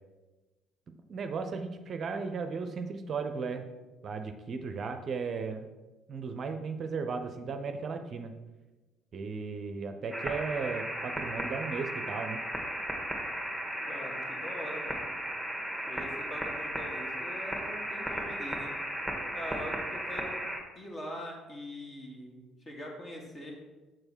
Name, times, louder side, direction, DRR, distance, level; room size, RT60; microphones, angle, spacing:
voice 1, 1.1-3.7 4.0-5.7 6.1-8.3 9.1-12.4, right 5 dB, 45° right, 7 dB, 0.6 m, -35 dB
sound 1, 10.1-20.6, right 1 dB, 5° left, 1.6 m, -35 dB
voice 2, 13.9-15.1 15.9-18.7 19.3-20.5 20.8-23.5, equal, 35° left, 0 dB, 2.1 m, -42 dB
6.7 x 6.3 x 4.4 m, 1.2 s
figure-of-eight pair, 50°, 0 cm